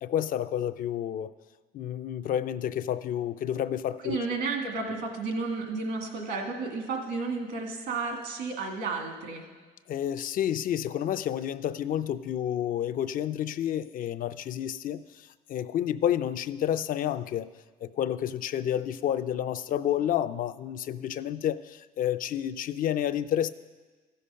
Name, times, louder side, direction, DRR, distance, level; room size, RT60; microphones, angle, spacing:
voice 1, 0.0-1.3 1.7-4.2 9.9-17.5 17.8-23.5, left 10 dB, 55° left, 11 dB, 0.4 m, -30 dB
voice 2, 4.0-9.5, right 4 dB, 80° right, 2 dB, 2.0 m, -32 dB
14.0 x 6.5 x 5.6 m, 1.3 s
cardioid pair, 110°, 17 cm